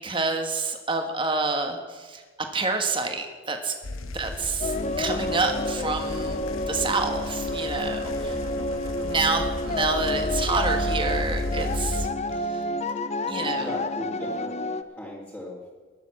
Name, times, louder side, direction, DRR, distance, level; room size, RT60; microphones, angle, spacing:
voice 1, 0.0-2.2 2.5-3.7 4.1-8.6 9.0-12.1 12.5-12.6 13.3-13.7, right 3 dB, 25° right, 5 dB, 1.5 m, -28 dB
sound 1, 3.8-12.1, left 2 dB, 75° left, 1.0 m, -34 dB
voice 2, 4.0-4.5 8.1-8.7 13.6-14.6 15.0-15.6, equal, 10° left, -5 dB, 2.5 m, -39 dB
sound 2, 4.6-14.8, left 1 dB, 30° left, 0.6 m, -29 dB
sound 3, 7.4-11.8, right 1 dB, 75° right, 1.8 m, -42 dB
20.0 x 7.2 x 7.2 m, 1.5 s
head